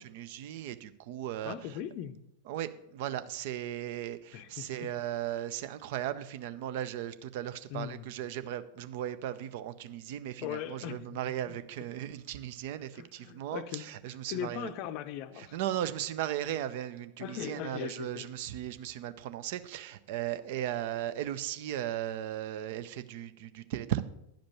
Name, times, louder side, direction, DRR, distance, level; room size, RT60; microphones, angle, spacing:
voice 1, 0.0-1.8 2.5-14.7 15.4-24.0, right 11 dB, 50° right, 0.5 m, -37 dB
voice 2, 1.4-2.2 4.3-4.9 7.7-8.1 10.4-11.2 11.5-11.6 12.9-13.8 14.3-15.5 17.2-18.3, left 10 dB, 45° left, 0.6 m, -39 dB
10.5 x 5.1 x 6.9 m
figure-of-eight pair, 90°, 0 cm